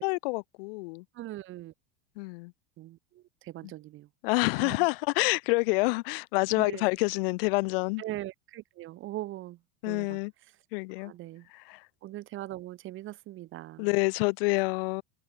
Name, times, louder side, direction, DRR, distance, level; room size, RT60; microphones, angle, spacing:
voice 1, 0.0-1.0 2.2-2.5 4.2-8.0 9.8-10.3 10.7-11.1 11.5-11.9 13.8-15.0, left 27 dB, 60° left, 0.6 m, -27 dB
voice 2, 1.1-1.7 2.8-4.1 4.6-4.9 6.5-6.9 8.0-9.6 9.9-10.2 11.0-11.5 12.0-13.9, right 15 dB, 35° right, 2.2 m, -40 dB
supercardioid pair, 135°, 33 cm